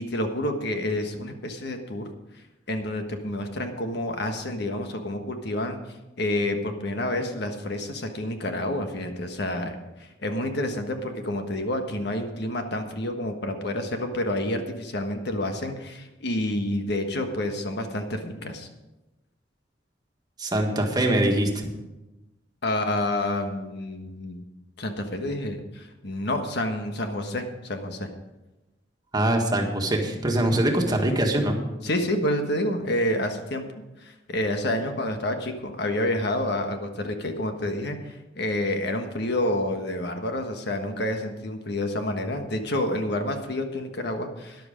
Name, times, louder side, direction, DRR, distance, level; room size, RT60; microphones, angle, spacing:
voice 1, 0.0-2.1 2.7-5.8 6.2-9.8 10.2-18.7 22.6-24.4 24.8-28.1 31.8-33.7 34.0-44.7, left 1 dB, 65° left, 5 dB, 1.4 m, -29 dB
voice 2, 20.4-21.7 29.1-31.6, right 1 dB, 20° right, 2 dB, 1.7 m, -23 dB
12.5 x 10.5 x 5.2 m, 1.0 s
head